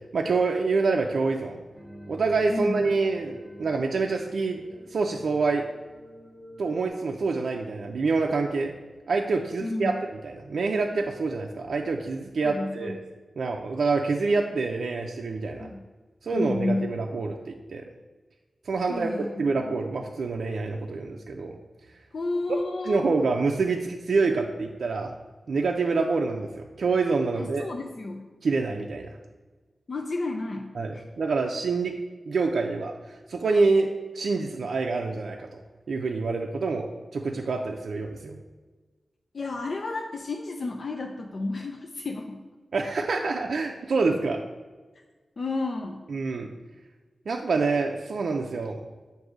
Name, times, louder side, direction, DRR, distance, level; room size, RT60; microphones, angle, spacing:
voice 1, 0.1-1.6 2.1-4.6 4.9-5.6 6.6-8.7 9.1-9.9 10.2-13.0 13.4-15.7 16.2-17.8 18.6-21.6 22.8-25.1 25.5-27.7 28.4-29.1 30.8-31.9 32.3-33.9 34.1-35.6 35.9-36.9 37.1-38.4 42.7-44.4 46.1-46.5 47.3-48.8, right 4 dB, 75° right, 2 dB, 0.4 m, -26 dB
sound 1, 1.7-6.9, equal, 10° left, 1.0 m, -48 dB
voice 2, 2.5-2.8 9.6-9.9 12.4-13.0 15.6-15.8 16.3-16.9 18.9-19.8 22.1-23.2 27.3-28.3 29.9-31.0 39.3-42.4 45.4-46.0, left 2 dB, 55° left, 3 dB, 0.4 m, -31 dB
7.8 x 2.6 x 4.9 m, 1.3 s
wide cardioid pair, 125°, 0 cm